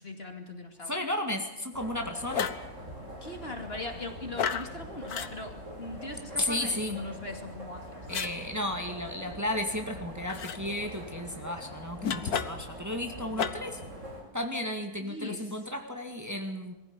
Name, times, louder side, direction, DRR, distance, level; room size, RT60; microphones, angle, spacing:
voice 1, 0.0-0.9 3.2-7.9 15.0-15.6, left 2 dB, 40° left, 5 dB, 2.7 m, -40 dB
voice 2, 0.8-2.5 6.4-7.0 8.1-13.8 14.3-16.7, left 1 dB, 10° right, 4 dB, 2.3 m, -33 dB
sound 1, 1.7-14.2, equal, 55° right, 6.3 m, -44 dB
sound 2, 2.3-2.7 4.4-4.7 5.1-5.3 8.1-8.3 10.3-10.6 12.0-12.7 13.4-13.8, left 7 dB, 75° left, 1.7 m, -32 dB
22.5 x 15.5 x 9.8 m, 0.92 s
omnidirectional pair, 1.6 m